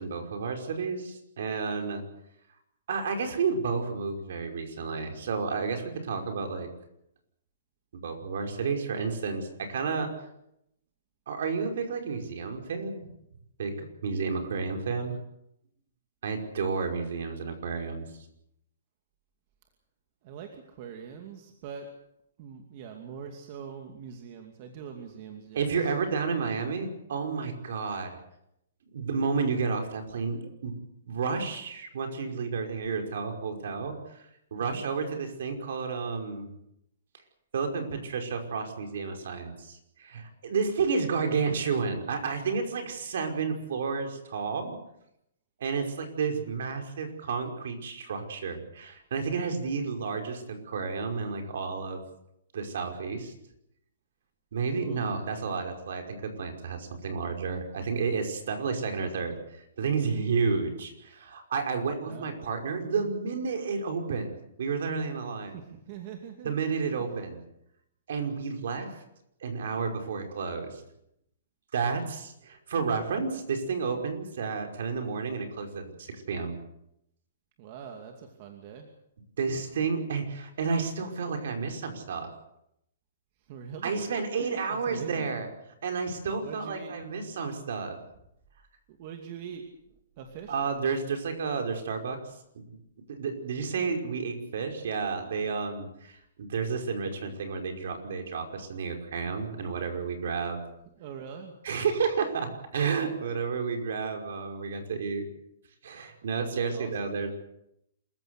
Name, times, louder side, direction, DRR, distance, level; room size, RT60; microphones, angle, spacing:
voice 1, 0.0-2.0 2.9-6.7 8.0-10.1 11.3-13.0 13.6-15.2 16.2-18.1 25.5-28.1 28.9-30.8 31.0-34.3 34.5-36.5 37.5-44.8 45.6-52.0 52.5-53.3 54.5-59.4 59.8-65.6 66.4-67.4 68.1-69.0 69.4-70.8 71.7-76.6 79.4-82.3 83.8-85.5 85.8-88.0 90.5-92.2 92.7-92.8 93.1-100.6 101.6-105.2 105.8-107.3, right 5 dB, 60° right, 4 dB, 5.4 m, -31 dB
voice 2, 20.2-21.9 22.4-25.9 34.6-34.8 54.7-55.1 62.0-62.3 65.5-66.6 67.0-67.1 77.6-78.9 83.5-84.1 84.3-85.3 86.4-86.9 88.9-89.6 90.2-90.6 101.0-101.5 106.5-107.2, right 7 dB, 35° right, 4 dB, 2.5 m, -43 dB
27.0 x 15.0 x 8.1 m, 0.78 s
hypercardioid pair, 165°, 0 cm